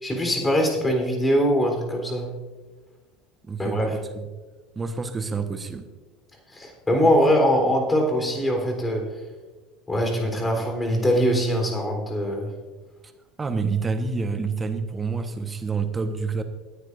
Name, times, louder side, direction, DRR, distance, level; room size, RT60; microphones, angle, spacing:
voice 1, 0.0-2.3 3.6-3.9 6.5-9.1 9.9-12.5, equal, 15° left, 2 dB, 3.8 m, -22 dB
voice 2, 3.4-4.3 4.7-5.9 13.4-16.4, right 4 dB, 20° right, 8 dB, 1.2 m, -28 dB
20.5 x 9.8 x 2.6 m, 1.3 s
figure-of-eight pair, 70°, 0 cm